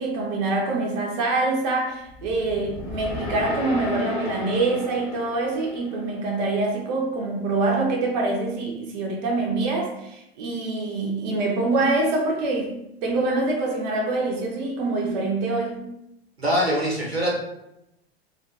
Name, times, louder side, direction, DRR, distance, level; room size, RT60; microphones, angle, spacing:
voice 1, 0.0-12.7 13.0-15.8, right 2 dB, 45° right, 0 dB, 0.5 m, -25 dB
sound 1, 2.1-6.4, left 3 dB, 20° left, 0.3 m, -34 dB
voice 2, 16.4-17.4, equal, 90° right, -4 dB, 0.8 m, -23 dB
2.4 x 2.3 x 2.4 m, 0.85 s
figure-of-eight pair, 90°, 31 cm